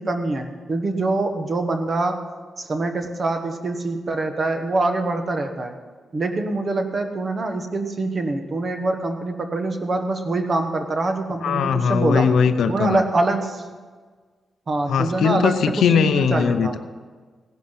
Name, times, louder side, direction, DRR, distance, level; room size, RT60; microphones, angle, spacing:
voice 1, 0.0-2.2 2.6-5.8 6.1-12.3 12.7-13.7 14.7-16.8, right 2 dB, 30° right, 6 dB, 1.3 m, -24 dB
voice 2, 11.4-13.0 14.9-16.8, left 6 dB, 75° left, 10 dB, 0.7 m, -20 dB
17.0 x 10.5 x 5.8 m, 1.5 s
wide cardioid pair, 180°, 0 cm